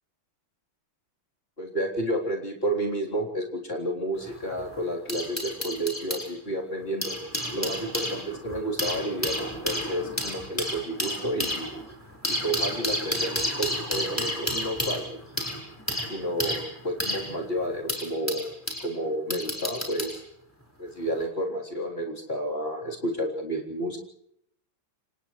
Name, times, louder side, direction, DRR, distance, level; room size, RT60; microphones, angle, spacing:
voice 1, 1.6-7.1 7.5-11.7 12.3-15.2 16.1-18.5 18.8-20.2 20.8-24.0, right 1 dB, 25° left, -1 dB, 4.0 m, -31 dB
sound 1, 4.2-6.3 6.8-18.9 19.3-20.2 21.1-21.3, equal, 5° left, 5.0 m, -31 dB
29.5 x 27.5 x 3.3 m, 0.73 s
omnidirectional pair, 2.4 m